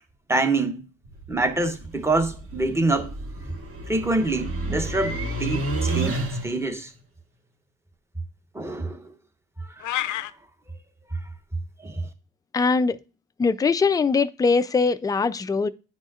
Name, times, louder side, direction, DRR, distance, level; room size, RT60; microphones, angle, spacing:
voice 1, 0.3-0.8 1.3-3.1 3.9-6.9 8.5-9.0 9.8-10.2 11.8-12.0, right 2 dB, 10° right, 0.9 m, -26 dB
sound 1, 1.0-6.7, right 2 dB, 50° right, 1.5 m, -31 dB
sound 2, 9.8-10.3, left 14 dB, 80° left, 0.5 m, -28 dB
voice 2, 12.5-13.0 13.4-15.7, left 4 dB, 15° left, 0.3 m, -21 dB
9.7 x 4.1 x 2.4 m
cardioid pair, 90°, 30 cm